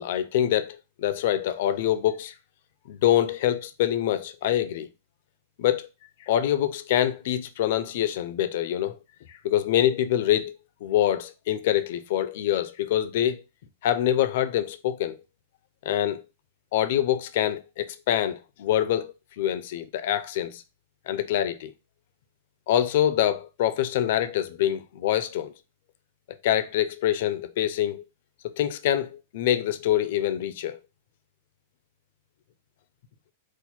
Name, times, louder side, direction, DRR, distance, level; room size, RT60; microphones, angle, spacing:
voice 1, 0.0-2.3 2.9-4.9 5.6-5.9 6.2-9.0 9.3-13.4 13.8-15.2 15.8-16.2 16.7-20.6 21.1-21.7 22.7-25.5 26.3-28.0 28.4-30.8, left 11 dB, 50° left, 0.4 m, -25 dB
4.3 x 2.2 x 4.2 m
supercardioid pair, 175°, 0 cm